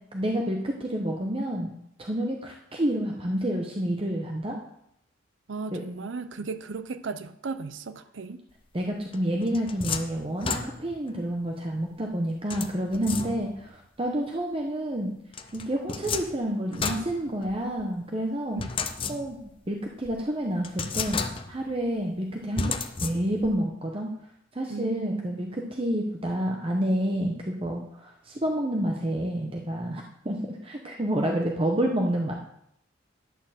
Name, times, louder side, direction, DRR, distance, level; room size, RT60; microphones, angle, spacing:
voice 1, 0.1-1.7 2.0-4.6 5.7-5.8 8.7-15.2 15.5-18.6 19.1-19.4 19.7-21.2 21.5-24.1 24.5-32.3, right 1 dB, 30° right, 1 dB, 0.9 m, -29 dB
voice 2, 5.5-8.4 18.5-18.8 24.7-25.6, right 4 dB, 65° right, 12 dB, 0.5 m, -36 dB
sound 1, 9.1-11.1 12.5-13.7 15.3-17.8 18.6-19.6 20.0-20.1 20.6-21.7 22.6-23.6, left 5 dB, 25° left, 0.6 m, -33 dB
11.0 x 4.5 x 7.4 m, 0.74 s
head